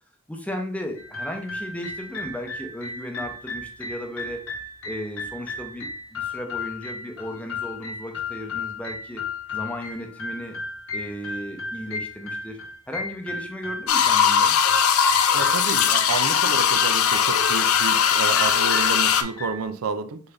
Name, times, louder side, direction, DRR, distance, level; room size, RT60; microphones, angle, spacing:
voice 1, 0.3-4.4 4.8-9.3 9.5-10.5 10.9-12.6 12.9-14.6, equal, 5° left, 0.6 m, -35 dB
sound 1, 1.0-19.6, left 3 dB, 70° left, 0.8 m, -35 dB
sound 2, 13.9-19.2, left 8 dB, 90° left, 0.5 m, -20 dB
voice 2, 15.3-20.2, right 5 dB, 85° right, 0.4 m, -30 dB
3.9 x 3.4 x 3.3 m
head